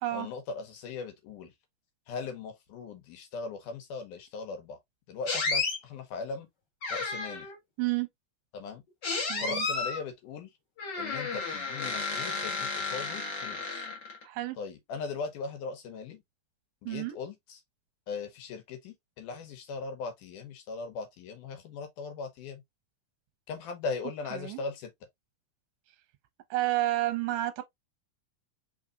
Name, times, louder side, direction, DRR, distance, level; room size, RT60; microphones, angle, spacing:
voice 1, 0.1-1.5 2.1-4.8 5.1-6.5 6.9-7.5 8.5-8.8 9.4-10.5 11.0-13.9 14.6-16.2 16.8-17.6 18.1-22.6 23.5-24.9, left 4 dB, 80° left, 2.5 m, -39 dB
sound 1, 5.3-5.8 6.8-7.6 9.0-10.0 10.8-14.2, left 4 dB, 45° left, 1.5 m, -32 dB
voice 2, 9.3-9.6 14.2-14.6 16.8-17.2 24.3-24.6 26.5-27.6, right 15 dB, 75° right, 1.7 m, -30 dB
4.9 x 3.8 x 2.4 m
omnidirectional pair, 3.7 m